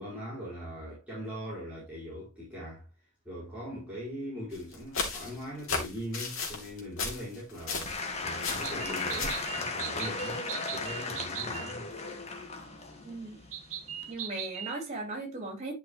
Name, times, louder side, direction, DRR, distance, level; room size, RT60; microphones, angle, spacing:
voice 1, 0.0-2.9 3.2-10.4 10.7-11.9, equal, 5° right, 4.6 m, -40 dB
sound 1, 4.5-8.1 8.4-9.5, left 4 dB, 65° left, 3.0 m, -35 dB
Applause / Crowd, 7.8-14.1, left 3 dB, 30° left, 1.5 m, -36 dB
sound 2, 8.6-11.8 13.5-14.8, right 10 dB, 70° right, 1.5 m, -40 dB
voice 2, 13.0-13.4 14.1-15.7, right 2 dB, 30° right, 4.2 m, -37 dB
11.5 x 5.8 x 3.1 m
head